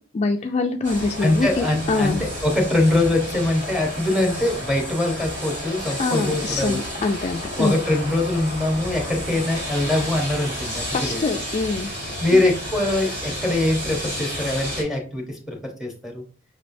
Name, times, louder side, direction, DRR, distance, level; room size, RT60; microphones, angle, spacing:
voice 1, 0.1-2.2 6.0-7.8 10.9-11.9, left 3 dB, 35° left, 4 dB, 0.3 m, -24 dB
sound 1, 0.8-14.8, equal, 60° right, 2.2 m, -31 dB
voice 2, 1.2-6.8 7.6-11.2 12.2-16.2, left 2 dB, ahead, 1 dB, 0.9 m, -23 dB
5.1 x 3.1 x 2.6 m, 0.38 s
head